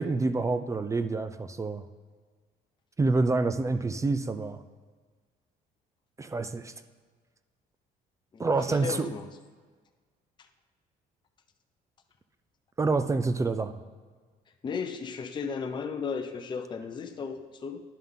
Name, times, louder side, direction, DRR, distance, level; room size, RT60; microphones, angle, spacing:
voice 1, 0.0-1.9 3.0-4.6 6.2-6.7 8.4-9.1 12.8-13.8, right 3 dB, 20° right, 11 dB, 0.4 m, -27 dB
voice 2, 8.3-9.3 14.6-17.8, left 5 dB, 25° left, 6 dB, 0.6 m, -35 dB
11.0 x 5.5 x 3.7 m, 1.5 s
cardioid pair, 110°, 17 cm